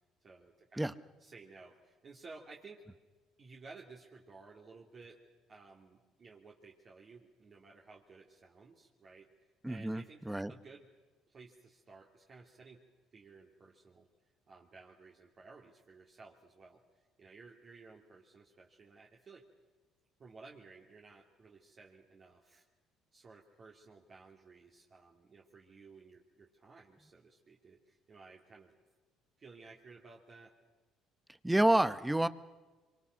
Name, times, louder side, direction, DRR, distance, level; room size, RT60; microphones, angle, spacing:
voice 1, 0.2-0.9 1.2-2.8 3.4-5.2 5.5-9.3 9.7-10.2 10.5-10.9 11.3-12.8 13.1-14.1 14.5-16.8 17.2-19.4 20.2-22.6 23.1-28.7 29.4-30.5, right 4 dB, 40° right, -2 dB, 2.8 m, -56 dB
voice 2, 9.6-10.5 31.4-32.3, right 1 dB, 5° right, 13 dB, 1.0 m, -29 dB
25.5 x 24.0 x 6.4 m, 1.3 s
cardioid pair, 95°, 0 cm